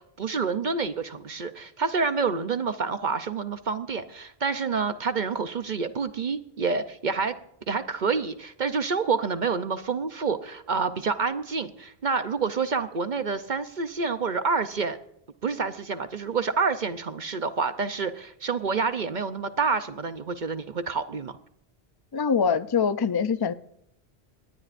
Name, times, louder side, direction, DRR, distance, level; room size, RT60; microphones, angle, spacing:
voice 1, 0.0-7.3 7.7-15.0 15.4-21.4, right 5 dB, 50° right, 0.8 m, -28 dB
voice 2, 22.1-23.5, left 6 dB, 35° left, 0.4 m, -24 dB
20.5 x 18.0 x 2.6 m
omnidirectional pair, 1.1 m